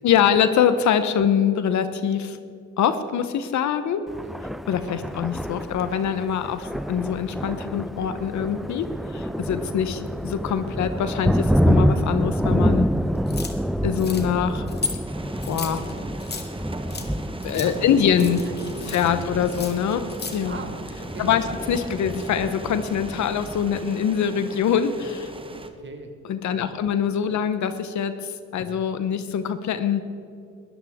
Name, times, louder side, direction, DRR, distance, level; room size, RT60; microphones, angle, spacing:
voice 1, 0.0-2.4 2.8-4.0 4.7-12.9 13.8-14.7 15.5-15.8 17.4-18.4 18.9-20.6 21.2-25.3 26.3-30.1, left 8 dB, 70° left, 10 dB, 0.9 m, -24 dB
Thunder, 4.1-23.8, equal, ahead, 0.3 m, -28 dB
sound 1, 13.3-13.5 13.9-14.3 14.7-15.0 15.4-16.5 16.9-17.1 17.4-17.7 18.1-19.1 19.4-20.4, left 4 dB, 35° left, 1.8 m, -34 dB
sound 2, 15.1-25.7, right 2 dB, 15° right, 1.2 m, -38 dB
voice 2, 17.5-19.6 20.4-21.6 23.3-23.6 25.8-26.1 26.5-26.8 27.3-27.4 28.6-28.8, right 4 dB, 40° right, 5 dB, 1.4 m, -40 dB
21.0 x 13.0 x 3.6 m, 2.5 s
cardioid pair, 90°, 30 cm